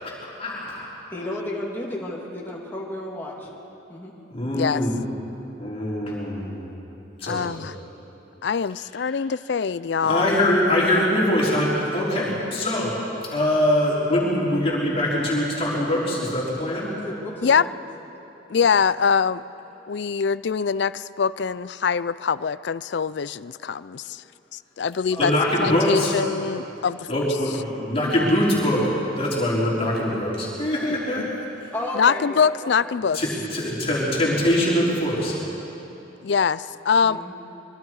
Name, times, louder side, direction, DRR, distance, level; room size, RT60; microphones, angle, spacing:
voice 1, 0.4-0.8 4.3-4.9 5.6-6.6 7.2-7.6 10.0-12.9 13.3-16.9 25.2-26.1 27.1-28.8 29.1-31.7 33.1-35.3, left 1 dB, 30° left, -6 dB, 4.4 m, -23 dB
voice 2, 1.1-3.5 3.9-4.1 17.0-17.7 18.7-18.8 25.1-25.8 31.7-32.5 32.8-33.0 37.0-37.3, left 1 dB, 10° left, -3 dB, 2.6 m, -33 dB
voice 3, 7.2-7.7 8.4-10.3 17.4-17.6 18.5-19.4 19.9-24.2 24.5-25.3 25.6-27.2 31.2-31.3 31.9-33.2 36.2-37.3, left 6 dB, 55° left, 17 dB, 0.4 m, -23 dB
25.5 x 23.0 x 4.8 m, 3.0 s
head